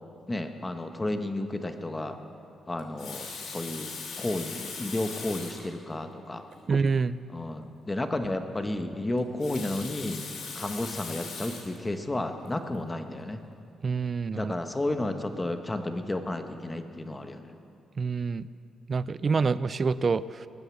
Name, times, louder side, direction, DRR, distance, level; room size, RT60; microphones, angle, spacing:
voice 1, 0.3-2.2 2.7-6.5 7.3-10.2 10.5-13.4 14.4-17.5, left 1 dB, 20° left, 7 dB, 1.2 m, -32 dB
Water tap faucet, 2.8-5.7 6.5-6.6 6.9-7.0 9.2-11.8 12.4-12.7, left 5 dB, 80° left, 2.7 m, -39 dB
voice 2, 6.7-7.2 13.8-14.5 18.0-18.5 18.9-20.5, right 5 dB, 40° right, 17 dB, 0.3 m, -27 dB
20.0 x 7.9 x 7.1 m, 2.6 s
cardioid pair, 85°, 0 cm